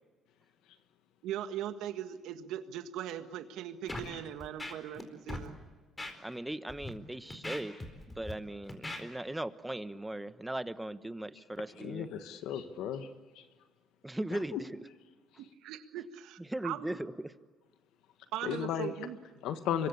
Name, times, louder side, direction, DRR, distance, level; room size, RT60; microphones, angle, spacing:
voice 1, 1.2-5.6 15.4-17.0 18.3-19.5, right 11 dB, 80° right, 9 dB, 1.6 m, -40 dB
Scratching (performance technique), 3.9-4.1 4.4-5.0 5.3-5.5 6.0-6.1 6.7-6.9 7.3-8.3 8.7-9.0, left 2 dB, 20° left, 4.4 m, -40 dB
voice 2, 6.2-7.8 8.1-12.1 14.0-14.7 16.5-17.3, right 1 dB, 10° right, 13 dB, 1.2 m, -38 dB
voice 3, 11.8-13.1 13.3-13.4 14.5-14.6 18.4-18.9 19.4-19.9, left 9 dB, 80° left, 9 dB, 1.5 m, -34 dB
26.0 x 22.5 x 8.5 m, 1.4 s
supercardioid pair, 80°, 0 cm